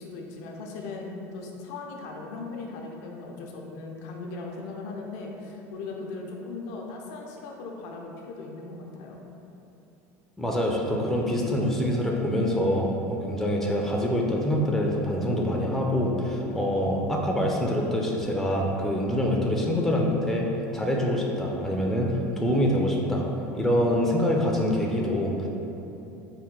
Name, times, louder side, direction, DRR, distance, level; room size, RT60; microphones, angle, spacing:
voice 1, 0.0-9.2, left 3 dB, 75° left, 0 dB, 0.5 m, -38 dB
voice 2, 10.4-20.5 20.7-23.3 23.5-25.5, equal, 5° left, -1 dB, 0.5 m, -25 dB
4.3 x 2.2 x 3.7 m, 2.9 s
supercardioid pair, 100°, 8 cm